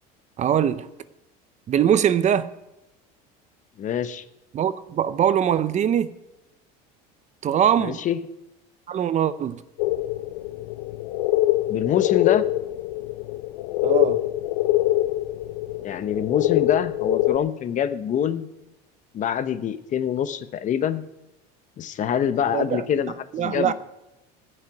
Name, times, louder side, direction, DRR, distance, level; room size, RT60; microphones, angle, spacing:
voice 1, 0.4-0.9 1.7-2.5 4.5-6.1 7.4-8.0 8.9-9.6 13.8-14.2 22.5-22.9 23.3-23.7, right 9 dB, 35° right, 0.7 m, -22 dB
voice 2, 3.8-4.2 7.8-8.2 11.7-12.4 15.8-18.5 19.1-21.0 21.8-23.7, left 9 dB, 40° left, 0.9 m, -25 dB
sound 1, 9.8-17.4, left 16 dB, 80° left, 0.6 m, -24 dB
15.5 x 6.6 x 9.0 m
supercardioid pair, 120°, 20 cm